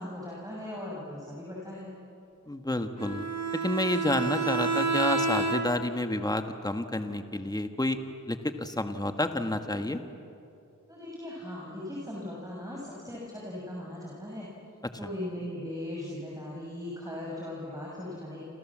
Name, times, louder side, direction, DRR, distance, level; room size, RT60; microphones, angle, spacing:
voice 1, 0.0-1.9 10.9-14.5 15.0-18.4, left 1 dB, 10° right, -4 dB, 6.7 m, -38 dB
voice 2, 2.5-3.2 3.5-8.0 8.3-10.0, left 1 dB, 10° left, 7 dB, 1.6 m, -29 dB
Bowed string instrument, 3.0-6.0, right 4 dB, 55° right, 2.6 m, -29 dB
29.5 x 27.0 x 7.5 m, 2.7 s
wide cardioid pair, 75°, 32 cm